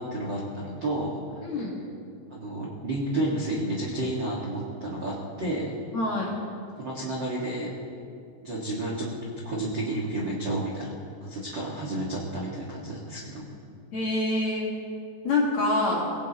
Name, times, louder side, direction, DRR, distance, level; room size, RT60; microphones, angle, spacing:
voice 1, 0.0-1.4 2.3-5.7 6.8-7.7 8.4-9.1 9.4-10.9 11.2-13.4, right 1 dB, 45° right, -5 dB, 1.4 m, -31 dB
voice 2, 1.4-1.7 5.9-6.3 13.9-14.7 15.2-16.0, left 2 dB, 50° left, -4 dB, 2.6 m, -26 dB
22.5 x 17.5 x 3.0 m, 2.5 s
omnidirectional pair, 5.2 m